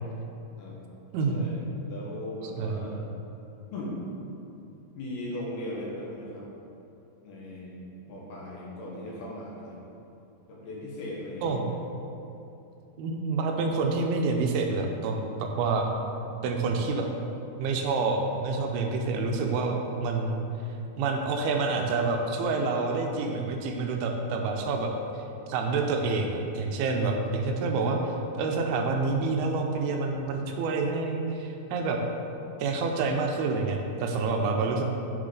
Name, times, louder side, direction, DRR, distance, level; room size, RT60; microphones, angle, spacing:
voice 1, 1.3-3.1 3.7-4.0 5.0-6.5 7.2-7.8 8.1-9.8 10.5-11.8 16.4-16.6, left 1 dB, 75° left, -4 dB, 3.1 m, -38 dB
voice 2, 13.0-15.9 16.4-17.1 17.6-20.4 21.0-24.9 25.5-32.0 32.6-34.8, right 3 dB, 80° right, 2 dB, 2.5 m, -28 dB
7.1 x 6.3 x 3.9 m, 2.8 s
omnidirectional pair, 4.5 m